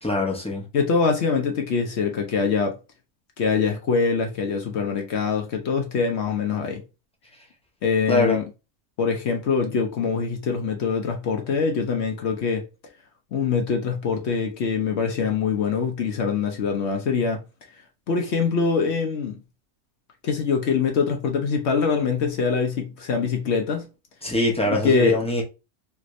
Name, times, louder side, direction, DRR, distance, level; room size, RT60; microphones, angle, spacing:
voice 1, 0.0-0.7 8.1-8.4 24.2-25.4, left 2 dB, 5° left, 0.5 m, -23 dB
voice 2, 0.7-2.8 3.4-6.8 7.8-8.4 9.0-12.6 13.3-17.4 18.1-19.4 20.2-23.9 24.6-25.1, left 5 dB, 60° left, 0.8 m, -24 dB
3.3 x 2.5 x 3.0 m
omnidirectional pair, 1.5 m